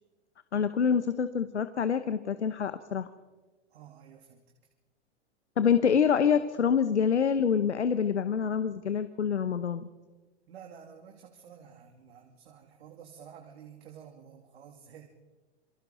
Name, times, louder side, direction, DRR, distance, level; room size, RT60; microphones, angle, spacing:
voice 1, 0.5-3.1 5.6-9.9, left 7 dB, 85° left, 12 dB, 1.1 m, -26 dB
voice 2, 3.7-4.4 10.5-15.1, right 8 dB, 65° right, 2 dB, 2.9 m, -51 dB
28.0 x 24.0 x 3.9 m, 1.2 s
figure-of-eight pair, 100°, 33 cm